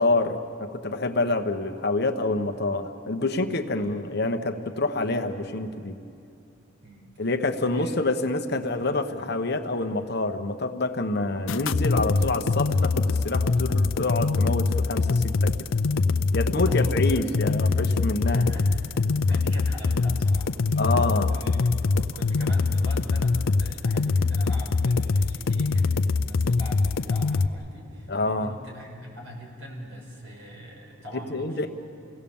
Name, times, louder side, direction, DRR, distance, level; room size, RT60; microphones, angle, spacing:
voice 1, 0.0-6.0 7.2-15.7 16.3-18.5 19.3-19.4 20.8-21.3 28.1-28.5 31.3-31.7, left 2 dB, 55° left, 6 dB, 1.1 m, -27 dB
voice 2, 6.8-7.3 7.6-7.9 16.6-17.2 18.2-18.9 19.3-21.0 21.3-31.7, equal, 80° right, -1 dB, 5.6 m, -42 dB
sound 1, 11.5-27.5, left 3 dB, 75° left, 0.5 m, -23 dB
29.0 x 17.5 x 7.1 m, 2.5 s
head